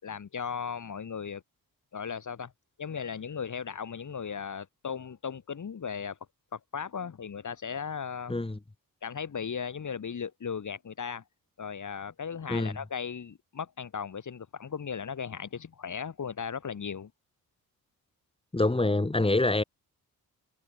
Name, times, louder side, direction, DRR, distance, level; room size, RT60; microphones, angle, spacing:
voice 1, 0.0-1.4 1.9-2.5 2.8-6.2 6.5-8.4 9.0-11.2 11.6-17.1, left 6 dB, 55° left, 4.0 m, -36 dB
voice 2, 18.5-19.6, left 2 dB, 15° left, 2.7 m, -26 dB
cardioid pair, 70°, 36 cm